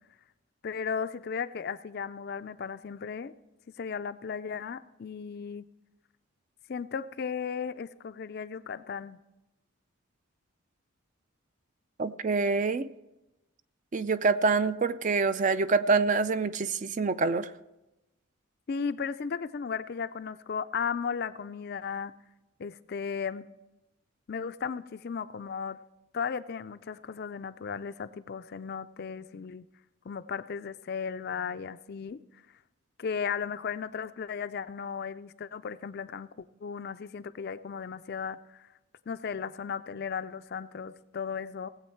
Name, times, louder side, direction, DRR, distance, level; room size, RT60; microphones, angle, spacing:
voice 1, 0.6-3.3 3.8-5.7 6.7-9.2 18.7-22.1 22.6-23.5 24.3-25.8 26.1-29.6 30.0-32.4 33.0-38.7 39.1-41.7, left 6 dB, 45° left, 13 dB, 0.4 m, -35 dB
voice 2, 12.0-12.9 13.9-17.5, right 4 dB, 35° right, 13 dB, 0.4 m, -26 dB
18.5 x 7.9 x 4.5 m, 0.98 s
head